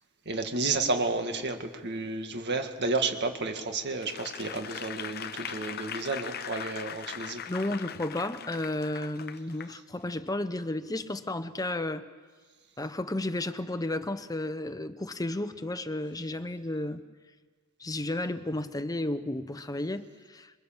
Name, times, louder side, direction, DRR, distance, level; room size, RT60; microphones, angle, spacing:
voice 1, 0.3-7.4, right 3 dB, 50° right, 2.0 m, -31 dB
Applause / Crowd, 4.0-9.7 10.3-10.4, left 8 dB, 45° left, 0.8 m, -40 dB
voice 2, 7.5-12.1 12.8-17.0 17.8-20.5, left 1 dB, 15° left, 0.9 m, -33 dB
26.5 x 23.0 x 7.4 m
head